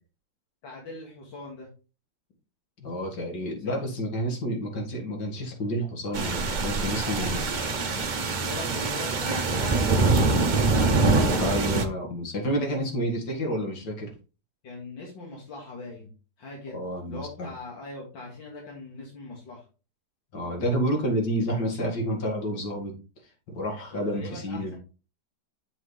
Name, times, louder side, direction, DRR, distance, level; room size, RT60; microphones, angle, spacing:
voice 1, 0.6-1.7 3.7-3.8 7.1-7.8 8.4-11.1 14.6-16.1 16.4-16.8 17.1-19.6 23.9-24.8, left 2 dB, 80° left, -2 dB, 2.6 m, -41 dB
voice 2, 2.8-7.4 11.4-14.1 16.7-17.5 20.3-22.9 23.5-24.8, equal, 65° left, 1 dB, 2.5 m, -29 dB
sound 1, 6.1-11.9, right 3 dB, 45° right, 0.5 m, -24 dB
7.7 x 5.9 x 3.2 m, 0.33 s
omnidirectional pair, 2.0 m